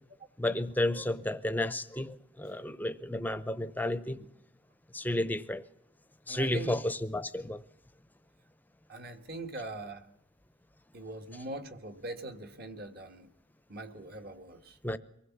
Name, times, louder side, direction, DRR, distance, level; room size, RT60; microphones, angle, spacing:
voice 1, 0.4-4.2 4.9-5.6 6.3-7.6 14.8-15.0, left 1 dB, 10° left, 0.7 m, -32 dB
voice 2, 6.3-6.8 8.9-10.1 10.9-13.3 13.7-14.8, right 2 dB, 50° right, 1.5 m, -42 dB
23.5 x 16.0 x 7.3 m
head